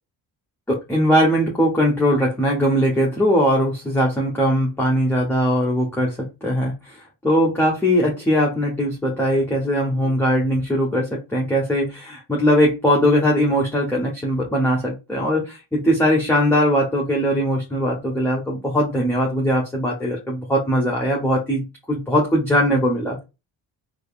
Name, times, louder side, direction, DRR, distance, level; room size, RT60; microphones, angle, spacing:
voice 1, 0.7-23.2, equal, 5° left, -3 dB, 1.1 m, -20 dB
3.3 x 2.1 x 2.4 m, 0.26 s
supercardioid pair, 50°, 49 cm